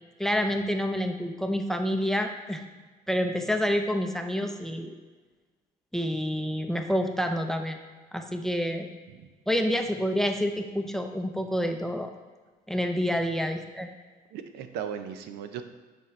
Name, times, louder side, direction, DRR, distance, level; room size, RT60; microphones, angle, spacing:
voice 1, 0.2-2.6 3.1-4.9 5.9-7.8 8.1-8.9 9.5-12.1 12.7-13.9, equal, ahead, 5 dB, 0.5 m, -28 dB
voice 2, 14.3-15.6, right 8 dB, 85° right, 8 dB, 0.6 m, -37 dB
8.2 x 4.5 x 3.2 m, 1.4 s
cardioid pair, 110°, 17 cm